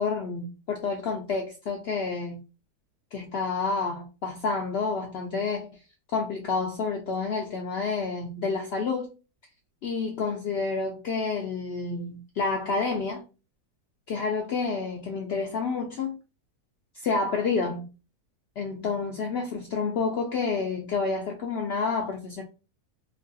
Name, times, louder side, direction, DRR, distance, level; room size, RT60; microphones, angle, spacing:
voice 1, 0.0-2.4 3.1-5.7 6.1-9.1 9.8-13.2 14.1-16.2 16.9-17.9 18.6-22.4, left 4 dB, 85° left, 0.5 m, -29 dB
3.1 x 2.2 x 2.6 m
omnidirectional pair, 1.6 m